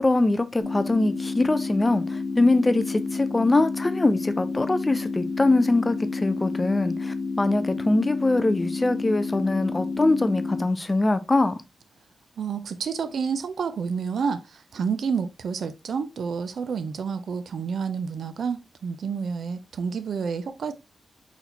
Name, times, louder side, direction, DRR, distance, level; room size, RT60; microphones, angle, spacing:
voice 1, 0.0-11.6, left 2 dB, 15° left, 0.4 m, -23 dB
sound 1, 0.6-10.6, left 4 dB, 45° left, 2.0 m, -30 dB
voice 2, 12.4-20.7, right 6 dB, 65° right, 0.5 m, -29 dB
4.2 x 4.1 x 2.8 m
wide cardioid pair, 170°, 0 cm